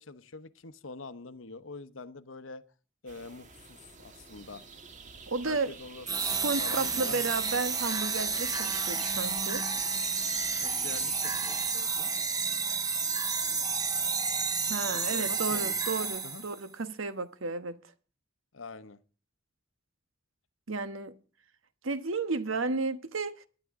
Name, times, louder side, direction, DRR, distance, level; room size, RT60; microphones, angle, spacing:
voice 1, 0.0-2.6 3.0-4.7 5.4-6.3 6.6-7.3 10.6-12.1 14.9-15.8 16.2-16.4 18.5-19.0, left 3 dB, 80° left, 0.9 m, -45 dB
sound 1, 3.1-11.7, right 4 dB, 40° right, 1.5 m, -50 dB
voice 2, 5.3-5.7 6.2-9.6 14.7-17.8 20.7-21.1 21.8-23.4, right 3 dB, 85° right, 1.2 m, -33 dB
sound 2, 6.1-16.6, right 5 dB, 20° right, 1.0 m, -31 dB
21.0 x 10.5 x 3.7 m
head